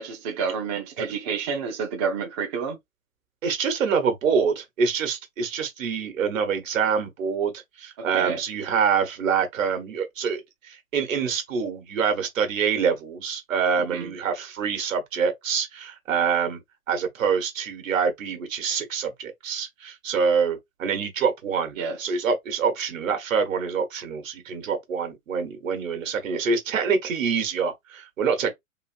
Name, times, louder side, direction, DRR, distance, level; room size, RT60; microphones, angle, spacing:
voice 1, 0.0-2.8 8.0-8.4 13.9-14.1 21.8-22.0, right 6 dB, 20° right, 0.4 m, -29 dB
voice 2, 3.4-16.6 16.9-28.5, right 6 dB, 60° right, 1.2 m, -26 dB
2.9 x 2.5 x 2.5 m
figure-of-eight pair, 105°, 44 cm